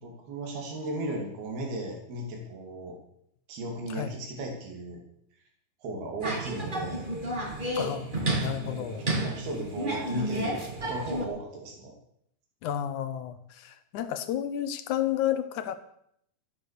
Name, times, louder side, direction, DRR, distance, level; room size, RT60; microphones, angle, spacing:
voice 1, 0.0-3.0 3.5-5.0 5.8-7.1 8.5-11.9, right 1 dB, 80° right, 1 dB, 5.0 m, -36 dB
sound 1, 6.2-11.2, right 1 dB, 30° right, 0.8 m, -31 dB
voice 2, 7.7-9.1 12.6-15.8, left 11 dB, 65° left, 10 dB, 2.1 m, -31 dB
14.0 x 11.0 x 6.8 m, 0.71 s
omnidirectional pair, 4.3 m